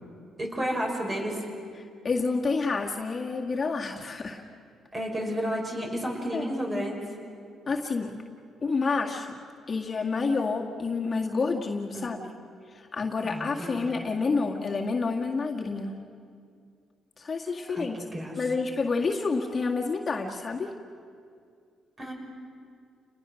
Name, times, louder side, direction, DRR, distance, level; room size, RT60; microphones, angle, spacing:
voice 1, 0.4-1.4 4.9-7.0 11.9-12.1 13.2-13.9 17.7-18.5 22.0-22.1, equal, 30° right, 1 dB, 6.0 m, -32 dB
voice 2, 2.0-4.4 6.3-6.4 7.7-8.1 8.6-9.3 9.7-12.2 12.7-16.0 17.2-18.0 18.4-20.7, left 4 dB, 35° left, 0 dB, 1.9 m, -28 dB
30.0 x 20.5 x 6.5 m, 2.3 s
cardioid pair, 90°, 0 cm